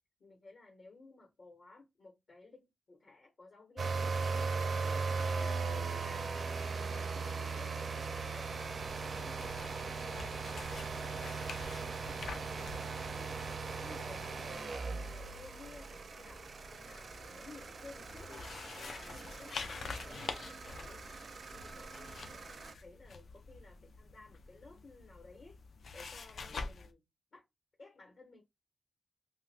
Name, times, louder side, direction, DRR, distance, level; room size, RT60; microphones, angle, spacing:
voice 1, 0.2-5.0 5.4-11.4 11.7-12.2 12.5-14.7 15.0-18.5 18.7-21.1 21.5-25.6 25.9-27.0 27.3-27.4 27.8-28.4, left 3 dB, 50° left, 1.1 m, -56 dB
sound 1, 3.8-22.7, right 4 dB, 55° right, 0.4 m, -39 dB
sound 2, 8.2-26.9, left 4 dB, 65° left, 0.5 m, -48 dB
2.9 x 2.4 x 3.4 m
wide cardioid pair, 175°, 0 cm